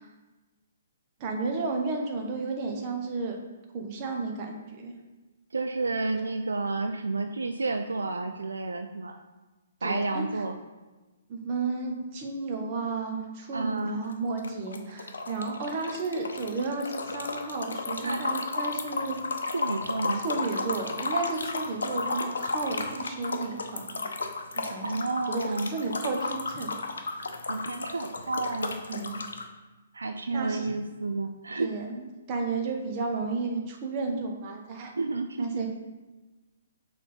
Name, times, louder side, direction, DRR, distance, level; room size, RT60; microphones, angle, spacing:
voice 1, 1.2-3.4 3.7-4.9 9.8-10.2 11.3-19.2 20.2-24.0 24.5-24.9 25.3-26.7 28.9-29.2 30.3-30.6 31.6-34.9 35.4-35.7, right 3 dB, 35° right, 2 dB, 1.1 m, -32 dB
voice 2, 5.5-9.2 9.8-10.6 13.5-14.0 18.0-18.2 19.5-20.3 24.8-25.8 27.5-28.8 29.9-31.7 35.0-35.7, right 3 dB, 75° right, 7 dB, 0.4 m, -31 dB
sound 1, 13.8-14.1 14.4-29.4, left 3 dB, 70° left, 0.7 m, -33 dB
6.4 x 3.6 x 4.3 m, 1.2 s
figure-of-eight pair, 125°, 0 cm